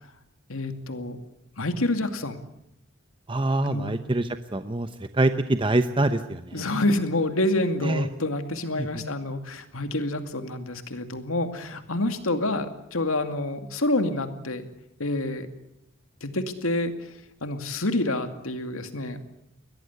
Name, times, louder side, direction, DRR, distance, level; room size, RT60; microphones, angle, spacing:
voice 1, 0.5-1.2 1.6-2.4 3.6-4.0 6.5-14.7 15.0-15.5 16.2-17.1 17.4-19.2, left 2 dB, 80° left, 8 dB, 2.4 m, -28 dB
voice 2, 3.3-6.6 7.8-8.1 8.8-8.9, right 2 dB, 25° right, 9 dB, 0.8 m, -25 dB
22.5 x 18.0 x 9.6 m, 0.84 s
head